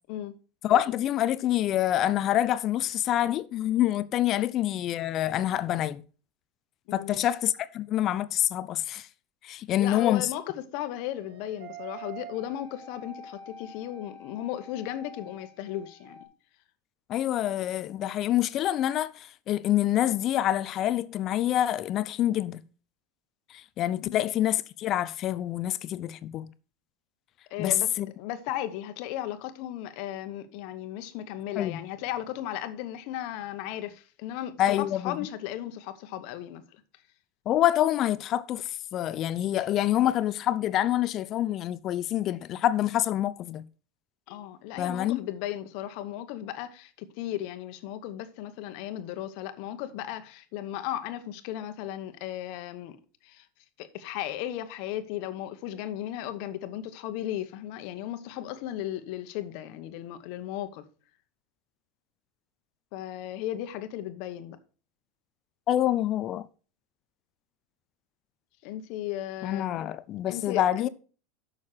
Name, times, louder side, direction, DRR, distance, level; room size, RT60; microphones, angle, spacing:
voice 1, 0.6-6.0 6.9-9.1 9.4-10.3 17.1-22.6 23.5-26.5 27.6-28.1 31.6-31.8 34.6-35.2 37.5-43.6 44.8-45.2 65.7-66.5 69.4-70.9, left 12 dB, 35° left, 0.4 m, -26 dB
voice 2, 6.9-7.3 9.8-16.2 24.0-24.3 27.5-27.9 28.2-36.6 44.3-53.0 53.2-53.5 53.8-60.8 62.9-64.6 68.6-69.9 70.3-70.9, left 12 dB, 55° left, 1.0 m, -36 dB
sound 1, 11.1-16.2, right 2 dB, 75° right, 2.5 m, -46 dB
6.5 x 6.3 x 5.6 m
supercardioid pair, 145°, 0 cm